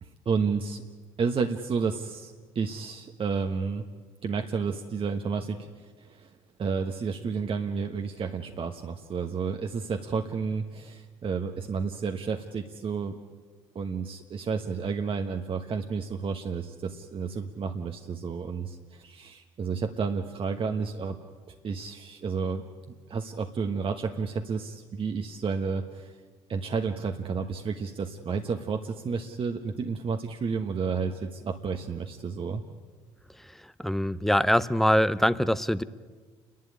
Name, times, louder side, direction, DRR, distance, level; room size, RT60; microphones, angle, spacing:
voice 1, 0.0-0.8 1.2-3.8 4.2-6.3 6.6-13.1 13.7-21.2 21.5-22.7 23.1-26.2 26.5-32.6, right 5 dB, 45° right, 5 dB, 1.2 m, -31 dB
voice 2, 33.8-35.8, equal, ahead, 15 dB, 0.8 m, -23 dB
29.0 x 11.5 x 9.8 m, 1.5 s
supercardioid pair, 75°, 13 cm